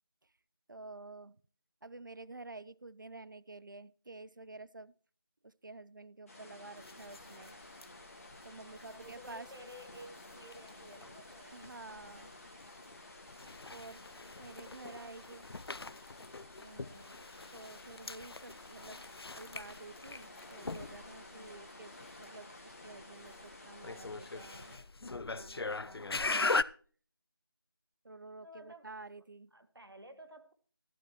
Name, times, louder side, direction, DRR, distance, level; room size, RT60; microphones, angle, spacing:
voice 1, 0.7-1.4 1.8-4.9 5.4-7.6 8.4-9.5 11.5-12.3 13.7-14.0 14.4-15.4 17.5-19.0 19.3-26.6 28.0-29.5, right 3 dB, 55° right, 20 dB, 0.5 m, -50 dB
sound 1, 6.3-24.8, left 2 dB, 35° left, 2.3 m, -53 dB
voice 2, 6.3-6.8 8.6-11.6 14.8-15.2 16.6-17.3 21.3-21.7 28.4-28.9 29.5-30.5, right 1 dB, 80° right, 9 dB, 1.6 m, -54 dB
sound 2, 6.8-26.6, left 3 dB, 90° left, 0.5 m, -41 dB
15.5 x 12.5 x 3.0 m, 0.42 s
figure-of-eight pair, 175°, 13 cm